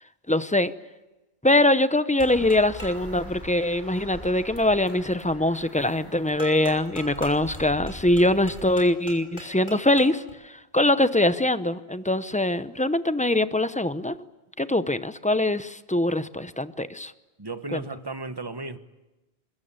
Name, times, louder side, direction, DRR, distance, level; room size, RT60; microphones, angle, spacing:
voice 1, 0.3-0.7 1.4-14.2 14.6-17.1 17.7-17.8, left 1 dB, 10° left, 12 dB, 0.6 m, -23 dB
sound 1, 2.2-3.1 6.4-10.3, equal, 50° left, 5.4 m, -42 dB
sound 2, 2.2-8.7, equal, 25° left, 5.1 m, -43 dB
voice 2, 17.4-18.8, right 3 dB, 25° right, 10 dB, 1.2 m, -34 dB
25.0 x 22.0 x 8.9 m, 1.1 s
omnidirectional pair, 1.1 m